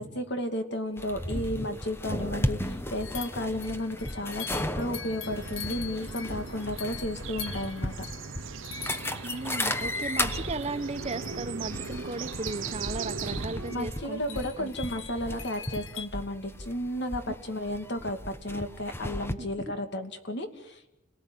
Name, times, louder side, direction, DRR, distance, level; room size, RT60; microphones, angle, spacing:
voice 1, 0.0-7.9 13.7-20.9, left 1 dB, 65° left, 6 dB, 2.6 m, -33 dB
sound 1, 1.0-19.3, left 1 dB, 10° left, 1.1 m, -35 dB
sound 2, 1.3-1.4 1.6-1.7 3.0-16.1, left 9 dB, 85° left, 1.5 m, -45 dB
sound 3, 5.2-13.8, right 6 dB, 85° right, 0.9 m, -39 dB
voice 2, 9.2-14.7, right 2 dB, 35° right, 9 dB, 1.4 m, -36 dB
29.0 x 18.5 x 9.5 m, 0.92 s
head